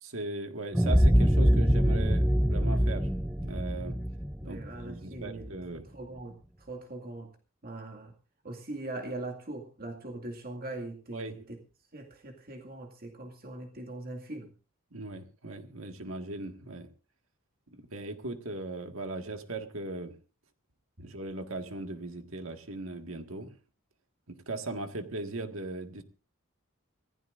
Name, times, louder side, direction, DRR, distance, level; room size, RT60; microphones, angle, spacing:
voice 1, 0.0-3.1 3.4-4.0 4.4-5.9 11.1-11.4 14.9-16.9 17.7-20.1 21.0-23.5 24.3-26.0, right 2 dB, 70° right, 6 dB, 1.8 m, -38 dB
sound 1, 0.7-5.5, equal, ahead, 0.6 m, -24 dB
voice 2, 4.4-7.3 7.6-8.1 8.4-11.6 11.9-14.5, right 2 dB, 45° right, 2 dB, 2.2 m, -41 dB
25.5 x 15.5 x 2.6 m, 0.34 s
head